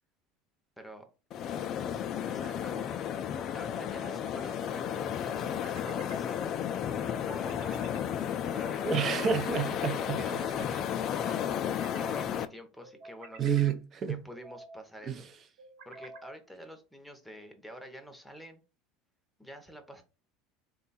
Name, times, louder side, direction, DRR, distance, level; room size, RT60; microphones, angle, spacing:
voice 1, 0.8-1.1 1.6-2.9 3.5-8.2 8.5-9.1 9.8-11.5 12.0-13.6 14.1-15.2 15.8-18.6 19.4-20.0, equal, ahead, 0.8 m, -48 dB
sound 1, 1.3-12.4, left 9 dB, 45° left, 0.4 m, -33 dB
sound 2, 1.8-2.4 3.8-4.6 5.4-6.2 7.3-8.0 8.6-9.3 9.9-10.8 11.4-12.1 12.8-13.7 14.3-14.8 15.6-16.4, right 3 dB, 80° right, 1.1 m, -51 dB
voice 2, 8.9-10.2 13.4-14.2 15.1-15.2, right 7 dB, 35° right, 0.6 m, -29 dB
3.6 x 2.3 x 4.0 m
supercardioid pair, 130°, 0 cm